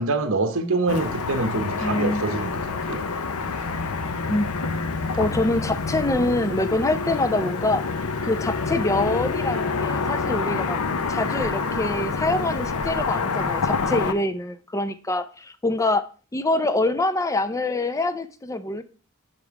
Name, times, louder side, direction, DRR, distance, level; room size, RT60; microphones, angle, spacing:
voice 1, 0.0-3.1 3.5-3.7, right 3 dB, 65° right, 0.8 m, -26 dB
Car passing by / Traffic noise roadway noise, 0.9-14.1, left 4 dB, 80° left, 0.7 m, -27 dB
voice 2, 1.8-2.3 4.3-4.5 5.2-10.8 11.1-16.1 16.3-18.8, left 2 dB, 15° left, 0.5 m, -25 dB
6.1 x 5.3 x 4.6 m
head